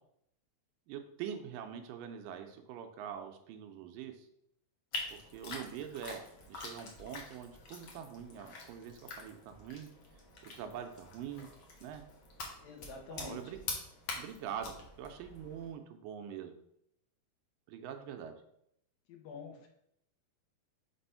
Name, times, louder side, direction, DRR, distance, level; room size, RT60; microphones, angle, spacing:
voice 1, 0.9-4.3 5.1-9.9 10.4-11.5 11.8-12.0 13.1-13.6 14.2-16.5 17.7-18.4, right 8 dB, 80° right, 6 dB, 2.2 m, -44 dB
sound 1, 4.9-15.7, left 3 dB, 65° left, 1.2 m, -46 dB
voice 2, 12.6-13.6 19.1-19.7, left 5 dB, 85° left, 3 dB, 2.7 m, -48 dB
6.1 x 3.3 x 5.5 m, 0.73 s
omnidirectional pair, 4.1 m